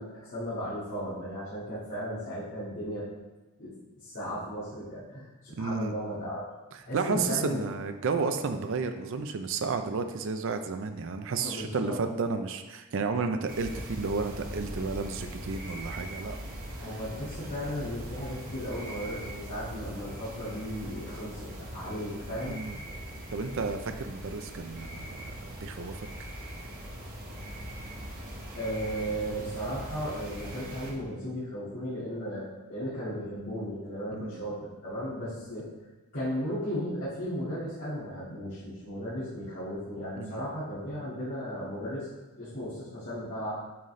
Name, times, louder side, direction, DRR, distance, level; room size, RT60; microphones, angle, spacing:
voice 1, 0.0-3.1 3.6-3.7 4.0-6.4 6.9-7.6 11.4-11.9 16.2-16.3 16.8-22.6 28.6-32.4 32.7-35.7 36.1-42.1 42.4-43.5, equal, 60° left, -13 dB, 2.0 m, -35 dB
voice 2, 5.6-5.9 6.9-16.4 22.5-22.8 23.3-26.3 34.1-34.4 40.2-40.5, right 4 dB, 60° right, 7 dB, 0.4 m, -32 dB
sound 1, 13.5-30.9, equal, 40° right, 1.3 m, -41 dB
8.5 x 4.0 x 3.2 m, 1.1 s
head